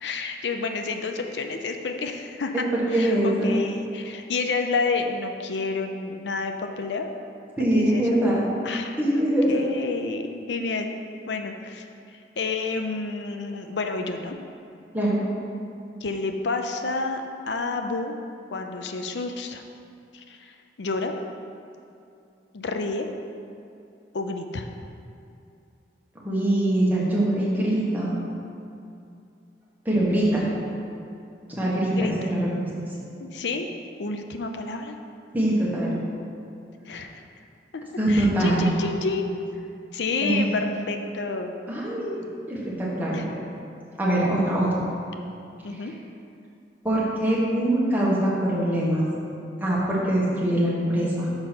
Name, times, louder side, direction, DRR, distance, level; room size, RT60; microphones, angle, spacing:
voice 1, 0.0-7.1 7.7-8.1 8.6-9.0 9.5-10.9 11.3-11.8 12.4-14.4 16.0-18.1 18.5-19.6 20.1-21.1 22.5-23.1 24.1-24.7 31.9-32.3 33.2-33.7 34.0-35.0 36.9-37.1 37.7-37.8 38.1-41.5 43.1-43.3 45.6-45.9, left 3 dB, 80° left, 5 dB, 0.6 m, -29 dB
voice 2, 2.7-3.5 7.6-8.4 9.0-9.5 14.9-15.2 26.2-28.2 29.8-30.5 31.5-32.7 35.3-35.9 38.0-38.7 40.2-40.4 41.7-43.3 44.0-44.7 46.8-49.0 49.6-51.3, right 1 dB, 10° right, -7 dB, 1.7 m, -23 dB
6.8 x 5.4 x 5.9 m, 2.6 s
head